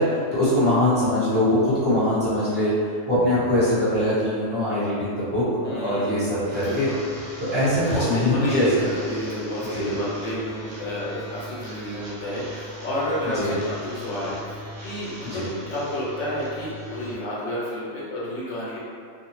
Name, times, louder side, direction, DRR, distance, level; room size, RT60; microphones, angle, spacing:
voice 1, 0.0-2.7 3.1-6.9 7.4-8.6 9.7-9.9 13.3-13.5 15.2-15.4, left 1 dB, 10° right, -15 dB, 0.9 m, -22 dB
voice 2, 5.6-7.0 7.9-14.4 14.8-18.8, left 1 dB, 70° left, -7 dB, 1.1 m, -30 dB
sound 1, 6.4-17.1, left 1 dB, 75° right, 1.1 m, -39 dB
2.7 x 2.1 x 3.0 m, 2.2 s
omnidirectional pair, 1.3 m